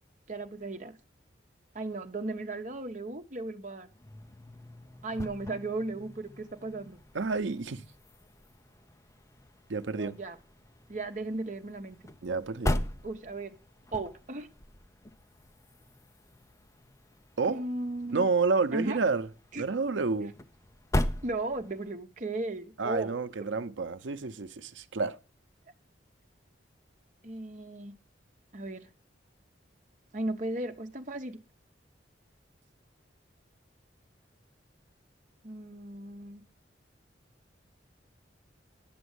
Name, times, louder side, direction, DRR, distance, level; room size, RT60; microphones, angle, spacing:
voice 1, 0.3-1.0 1.7-3.9 5.0-7.0 9.9-10.4 10.9-12.0 13.0-13.6 13.9-14.5 17.5-18.3 18.7-19.0 19.5-19.6 21.2-23.5 27.2-27.9 28.5-28.9 30.1-31.4 35.4-36.4, right 2 dB, 40° right, 1.0 m, -36 dB
sound 1, 3.9-22.0, left 1 dB, 15° left, 0.6 m, -39 dB
voice 2, 7.1-7.8 9.7-10.2 12.2-12.9 17.4-17.7 18.1-19.3 19.6-20.3 22.8-25.2, right 4 dB, 90° right, 0.7 m, -29 dB
10.5 x 7.0 x 8.0 m
head